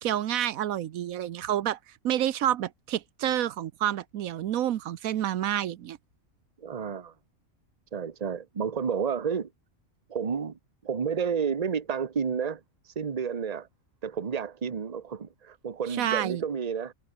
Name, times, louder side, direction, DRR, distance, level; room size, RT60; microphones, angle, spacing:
voice 1, 0.0-6.0 15.9-16.4, right 11 dB, 85° right, 1.2 m, -28 dB
voice 2, 6.6-7.1 7.9-9.5 10.1-12.6 13.0-13.7 14.0-16.9, right 6 dB, 30° right, 1.0 m, -31 dB
omnidirectional pair, 1.4 m